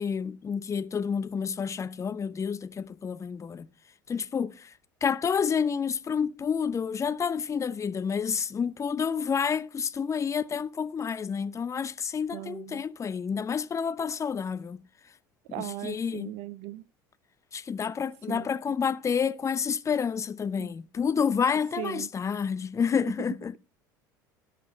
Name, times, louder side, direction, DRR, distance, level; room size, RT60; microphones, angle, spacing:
voice 1, 0.0-3.7 4.1-4.7 5.0-14.8 15.5-16.3 17.5-23.6, left 6 dB, 30° left, 0.8 m, -29 dB
voice 2, 12.3-12.8 15.5-16.8 18.3-18.5 20.6-20.7 21.8-22.1, right 17 dB, 60° right, 0.4 m, -38 dB
16.5 x 5.9 x 4.2 m
hypercardioid pair, 70°, 11 cm